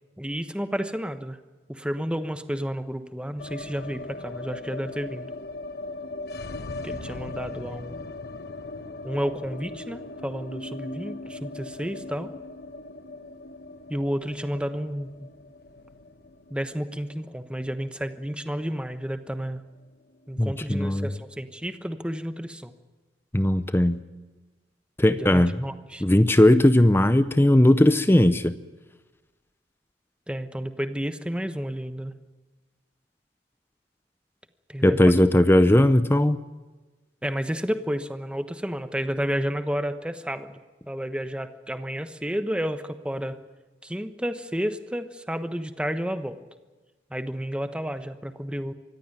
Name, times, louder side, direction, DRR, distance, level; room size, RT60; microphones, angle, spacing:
voice 1, 0.2-1.4 1.7-5.3 6.8-8.0 9.0-12.3 13.9-15.1 16.5-19.6 20.3-22.7 25.1-26.0 30.3-32.1 34.7-35.0 37.2-40.6 40.9-43.4 43.8-46.4 47.1-48.7, equal, 5° right, 9 dB, 1.0 m, -31 dB
sound 1, 3.4-19.5 19.7-19.8 20.1-20.8, left 2 dB, 60° left, 1.0 m, -39 dB
voice 2, 20.4-21.1 23.3-24.0 25.0-25.6 26.0-28.6 34.8-36.4, left 1 dB, 15° left, 12 dB, 0.6 m, -18 dB
24.0 x 15.0 x 9.1 m, 1.2 s
head